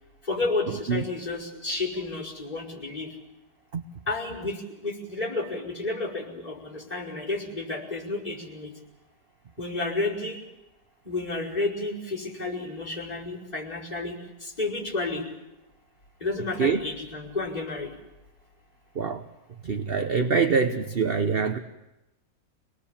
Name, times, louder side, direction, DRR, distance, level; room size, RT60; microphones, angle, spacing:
voice 1, 0.2-3.1 4.1-8.7 9.6-10.4 11.0-15.2 16.2-17.9, left 3 dB, 20° left, -5 dB, 5.5 m, -31 dB
voice 2, 19.6-21.6, right 5 dB, 45° right, 7 dB, 0.9 m, -24 dB
26.0 x 19.0 x 7.2 m, 1.0 s
omnidirectional pair, 1.9 m